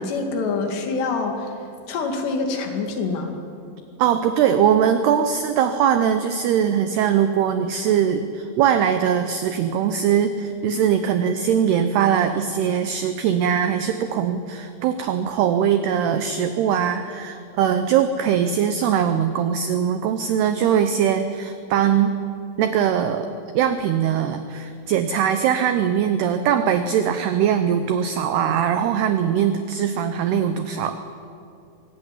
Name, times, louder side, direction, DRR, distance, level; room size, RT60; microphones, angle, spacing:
voice 1, 0.0-1.5 1.9-3.4, left 4 dB, 65° left, 4 dB, 4.1 m, -25 dB
voice 2, 4.0-22.2 22.6-31.0, right 8 dB, 85° right, 9 dB, 2.3 m, -21 dB
23.0 x 17.0 x 9.9 m, 2.6 s
omnidirectional pair, 5.8 m